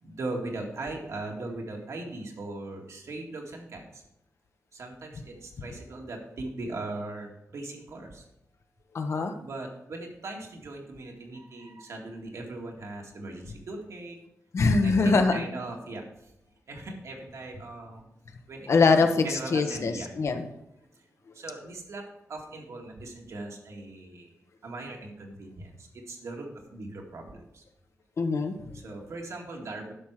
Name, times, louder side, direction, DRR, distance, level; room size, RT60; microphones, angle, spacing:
voice 1, 0.0-4.0 4.7-8.2 9.4-14.2 14.8-16.3 16.7-18.0 18.5-20.1 21.3-22.0 22.3-24.3 24.6-27.6 28.7-29.9, right 2 dB, 70° right, 1 dB, 2.0 m, -39 dB
voice 2, 8.9-9.3 14.5-15.4 18.7-20.4 28.2-28.7, left 4 dB, 60° left, 6 dB, 1.0 m, -23 dB
11.0 x 6.2 x 4.8 m, 0.83 s
wide cardioid pair, 115°, 5 cm